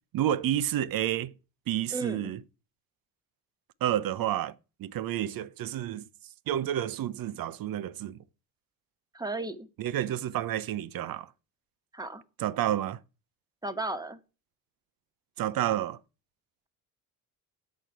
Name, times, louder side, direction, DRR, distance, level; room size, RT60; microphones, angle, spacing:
voice 1, 0.1-1.3 1.7-2.4 3.8-4.5 4.8-6.0 6.5-8.2 9.8-11.3 12.4-13.0 15.4-16.0, right 11 dB, 45° right, 0.8 m, -30 dB
voice 2, 1.9-2.3 9.1-9.7 11.9-12.2 13.6-14.2, right 2 dB, 10° right, 1.2 m, -34 dB
8.4 x 6.1 x 5.8 m
hypercardioid pair, 50°, 48 cm